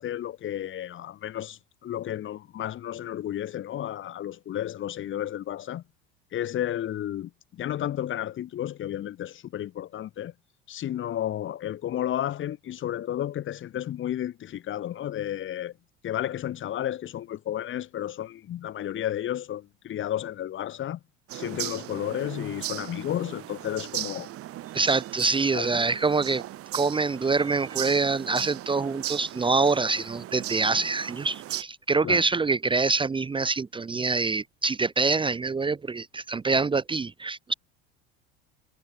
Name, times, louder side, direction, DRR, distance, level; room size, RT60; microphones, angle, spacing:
voice 1, 0.0-5.8 6.3-10.3 10.7-15.7 16.0-21.0 21.3-24.3 25.5-25.8 32.0-32.2, left 11 dB, 40° left, 1.6 m, -32 dB
sound 1, 21.3-31.6, right 14 dB, 50° right, 2.6 m, -38 dB
voice 2, 24.7-26.4 26.7-37.5, right 4 dB, 15° right, 1.0 m, -25 dB
hypercardioid pair, 90°, 30 cm